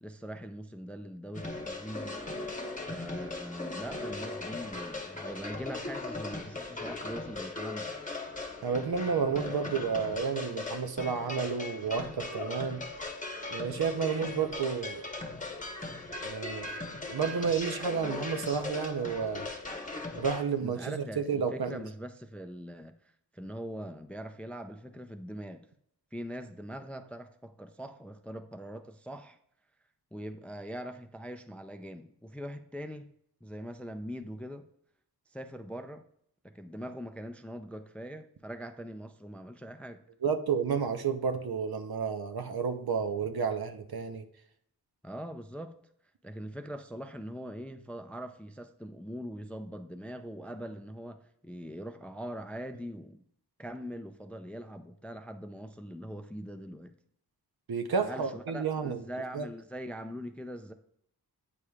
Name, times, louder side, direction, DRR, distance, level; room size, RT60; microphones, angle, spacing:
voice 1, 0.0-2.2 2.8-7.9 20.6-22.9 23.3-25.7 26.1-29.4 30.1-33.1 33.4-34.7 35.3-36.0 36.4-40.0 45.0-45.8 46.2-53.2 53.6-56.9 58.0-60.7, equal, 5° left, 0.4 m, -42 dB
sound 1, 1.3-20.4, left 2 dB, 20° left, 1.0 m, -39 dB
voice 2, 8.6-12.8 13.5-15.0 16.2-16.7 17.1-19.5 20.2-21.8 40.2-44.2 57.7-59.0 59.3-59.5, right 6 dB, 65° right, 0.7 m, -31 dB
8.5 x 4.8 x 2.3 m
wide cardioid pair, 55°, 41 cm